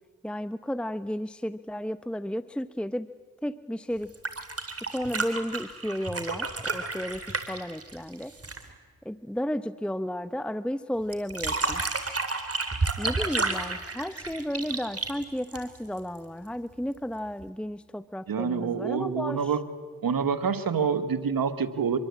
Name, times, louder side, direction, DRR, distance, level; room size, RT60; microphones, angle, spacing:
voice 1, 0.2-3.1 3.4-4.1 4.9-8.3 9.0-11.8 13.0-19.4, equal, 5° left, 14 dB, 0.8 m, -33 dB
sound 1, 4.0-8.7 11.1-16.0 17.4-17.5, right 3 dB, 40° right, 3.7 m, -31 dB
voice 2, 18.3-19.6 20.0-22.0, right 6 dB, 65° right, 10 dB, 2.0 m, -27 dB
25.0 x 23.0 x 8.5 m, 1.4 s
cardioid pair, 50°, 37 cm